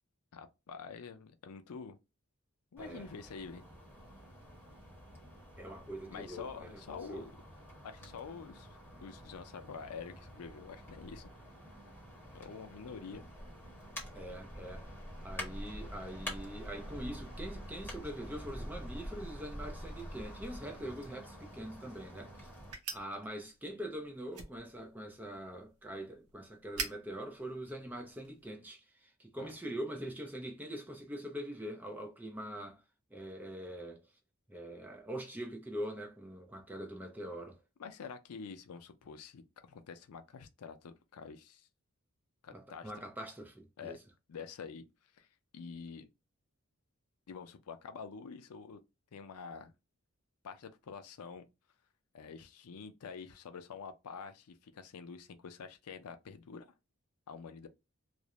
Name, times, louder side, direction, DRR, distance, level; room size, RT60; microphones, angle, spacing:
voice 1, 0.3-2.0 2.7-3.6 6.1-7.3 7.8-11.3 12.3-13.2 29.4-29.5 37.8-39.4 39.7-41.7 42.4-42.9 43.8-44.0 44.3-44.8 45.1-45.3 45.5-46.1 47.3-48.8 49.1-49.7 50.4-51.5 52.1-56.6 57.3-57.7, left 5 dB, 90° left, 0.5 m, -47 dB
sound 1, 2.8-22.7, equal, 10° left, 1.0 m, -47 dB
voice 2, 5.6-6.8 7.1-7.3 14.1-14.9 15.2-22.5 22.9-32.8 33.1-34.0 34.5-37.6 42.5-44.0, right 1 dB, 10° right, 0.4 m, -43 dB
sound 2, 22.7-28.5, right 5 dB, 90° right, 0.7 m, -47 dB
2.4 x 2.0 x 2.8 m
head